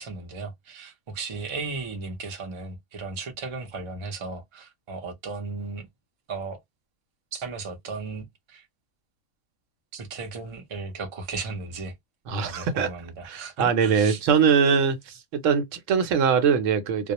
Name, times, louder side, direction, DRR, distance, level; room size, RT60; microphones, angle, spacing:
voice 1, 0.0-5.9 6.3-6.6 7.3-8.6 9.9-11.9 12.4-14.2, right 4 dB, 40° right, 0.4 m, -35 dB
voice 2, 12.3-12.9 13.2-15.0 15.3-17.1, right 6 dB, 75° right, 0.9 m, -22 dB
2.3 x 2.0 x 2.8 m
omnidirectional pair, 1.3 m